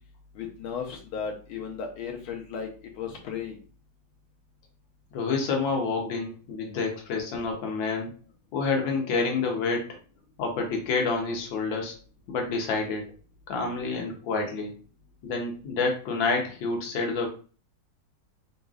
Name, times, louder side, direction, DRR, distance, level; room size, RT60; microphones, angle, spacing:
voice 1, 0.3-2.7 3.0-3.6, left 6 dB, 90° left, 1 dB, 1.6 m, -35 dB
voice 2, 5.1-8.1 8.5-9.9 10.4-11.9 12.3-13.1 13.5-14.7 15.2-17.3, left 4 dB, 70° left, 2 dB, 1.7 m, -28 dB
4.0 x 3.7 x 2.4 m, 0.38 s
omnidirectional pair, 2.2 m